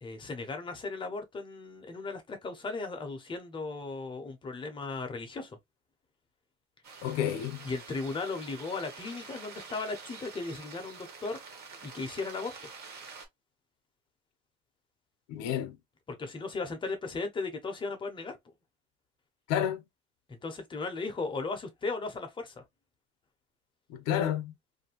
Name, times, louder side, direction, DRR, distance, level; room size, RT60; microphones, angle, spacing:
voice 1, 0.0-5.6 7.6-11.4 11.8-12.5 15.5-15.6 16.1-18.4 20.3-22.6, left 3 dB, 15° left, 0.5 m, -36 dB
sound 1, 6.8-13.3, right 4 dB, 35° right, 0.8 m, -47 dB
voice 2, 7.0-7.7 15.3-15.8 19.5-19.8 23.9-24.5, left 10 dB, 60° left, 0.7 m, -30 dB
2.6 x 2.5 x 2.8 m
cardioid pair, 165°, 29 cm